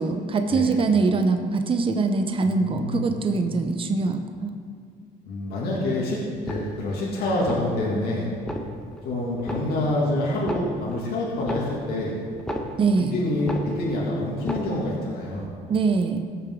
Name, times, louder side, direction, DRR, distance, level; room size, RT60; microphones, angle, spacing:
voice 1, 0.0-4.5 12.8-13.1 15.7-16.2, right 4 dB, 30° right, 6 dB, 0.8 m, -23 dB
voice 2, 2.4-3.1 5.3-8.3 9.0-12.2 13.0-15.5, left 1 dB, 70° left, -5 dB, 2.2 m, -27 dB
sound 1, 6.3-7.0 7.4-8.0 8.3-9.1 9.4-10.1 10.3-13.1 13.4-14.1 14.3-15.0 15.4-15.5, equal, 5° left, 1.0 m, -34 dB
17.0 x 6.8 x 3.8 m, 2.1 s
cardioid pair, 110°, 17 cm